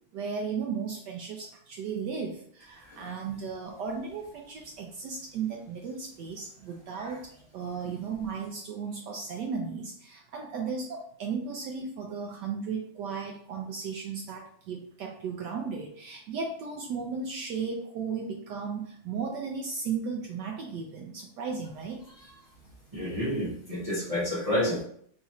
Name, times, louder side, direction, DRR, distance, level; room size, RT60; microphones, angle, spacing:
voice 1, 0.1-22.0, right 5 dB, 75° right, 1 dB, 1.0 m, -35 dB
voice 2, 22.9-24.8, left 1 dB, 40° right, -7 dB, 0.5 m, -29 dB
3.9 x 2.4 x 4.1 m, 0.63 s
omnidirectional pair, 2.3 m